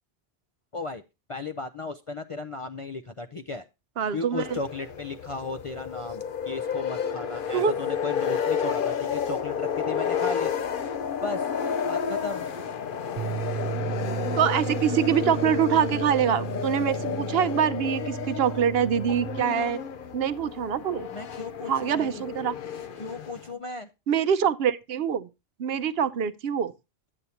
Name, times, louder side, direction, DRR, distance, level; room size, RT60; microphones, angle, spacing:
voice 1, 1.3-3.6 4.1-10.5 11.2-11.5 11.9-12.5 21.1-22.2 23.0-23.9, left 3 dB, 40° left, 0.5 m, -35 dB
voice 2, 4.0-4.6 7.5-7.7 14.4-19.8 20.1-21.1 21.7-22.6 24.1-25.3 25.6-26.7, right 8 dB, 70° right, 0.8 m, -25 dB
sound 1, 4.4-23.5, left 7 dB, 55° left, 0.9 m, -31 dB
sound 2, 13.2-19.4, right 9 dB, 45° right, 0.8 m, -34 dB
11.0 x 8.2 x 2.8 m
omnidirectional pair, 1.1 m